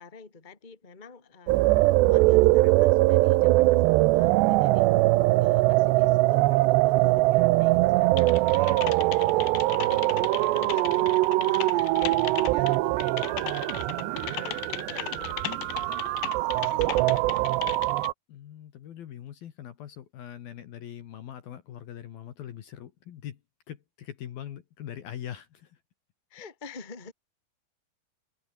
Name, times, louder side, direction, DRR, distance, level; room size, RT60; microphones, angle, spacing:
voice 1, 0.0-17.6 26.3-27.1, left 4 dB, 15° left, 2.0 m, -48 dB
sound 1, 1.5-18.1, right 19 dB, 85° right, 2.6 m, -22 dB
Typing, 8.2-18.1, left 19 dB, 85° left, 2.7 m, -37 dB
voice 2, 18.3-23.4 23.7-25.8, left 10 dB, 60° left, 3.0 m, -42 dB
omnidirectional pair, 5.6 m